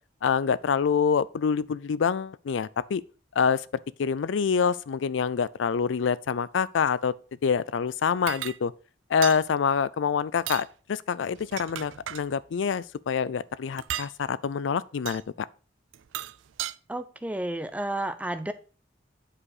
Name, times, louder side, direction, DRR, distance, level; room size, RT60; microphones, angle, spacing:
voice 1, 0.2-3.0 3.4-3.7 4.0-7.2 7.4-8.7 9.1-15.5, left 6 dB, 80° left, 0.4 m, -26 dB
sound 1, 8.3-8.6 9.2-9.4 10.4-10.7 11.4-12.3 13.8-14.1 15.1-15.2 15.9-16.7, right 12 dB, 85° right, 0.4 m, -35 dB
voice 2, 16.9-18.5, right 1 dB, 10° right, 0.5 m, -31 dB
8.5 x 4.9 x 4.8 m
head